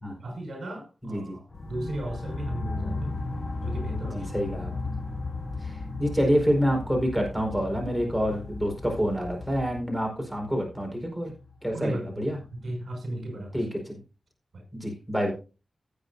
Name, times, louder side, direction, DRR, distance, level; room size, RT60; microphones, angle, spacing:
voice 1, 0.2-3.2 3.6-4.3 11.7-12.2 12.5-13.7 14.5-14.6, right 1 dB, 65° right, 5.8 m, -35 dB
voice 2, 1.0-1.4 4.1-4.7 5.6-11.3 11.6-12.4 13.5-14.0 14.7-15.3, equal, ahead, 4.9 m, -27 dB
sound 1, 1.5-9.8, left 2 dB, 50° left, 3.5 m, -38 dB
sound 2, 1.5-12.8, left 3 dB, 25° left, 3.1 m, -40 dB
18.0 x 8.2 x 2.7 m
wide cardioid pair, 150°, 0 cm